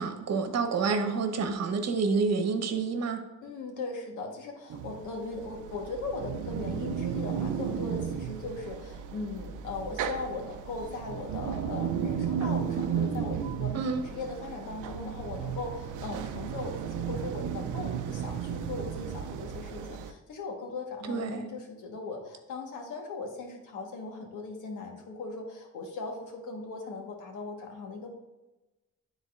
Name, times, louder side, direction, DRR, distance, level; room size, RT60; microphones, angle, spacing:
voice 1, 0.0-3.2 13.7-14.0 21.1-21.5, right 4 dB, 60° right, 6 dB, 1.1 m, -28 dB
voice 2, 3.4-28.1, left 3 dB, 85° left, 2 dB, 1.4 m, -39 dB
sound 1, 4.7-20.1, right 8 dB, 85° right, 0.5 m, -34 dB
11.5 x 4.0 x 2.5 m, 1.1 s
cardioid pair, 90°, 30 cm